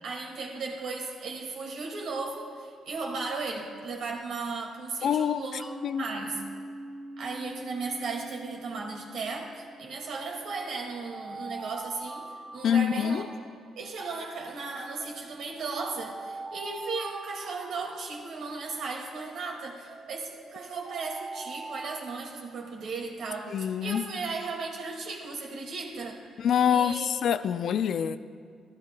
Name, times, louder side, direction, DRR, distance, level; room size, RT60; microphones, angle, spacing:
voice 1, 0.0-5.6 6.0-6.4 7.2-13.2 13.8-26.2 26.7-27.1, right 4 dB, 70° right, 1 dB, 2.0 m, -36 dB
voice 2, 5.0-5.4 5.8-6.1 12.6-13.3 23.5-24.1 26.4-28.2, left 8 dB, 65° left, 13 dB, 0.4 m, -25 dB
Mallet percussion, 5.6-11.0, right 1 dB, ahead, 1.2 m, -44 dB
Alarm, 8.0-8.4 10.1-13.9 15.0-18.8 19.9-23.1, right 3 dB, 30° right, 1.5 m, -44 dB
15.5 x 12.5 x 2.2 m, 2.1 s
cardioid pair, 90°, 0 cm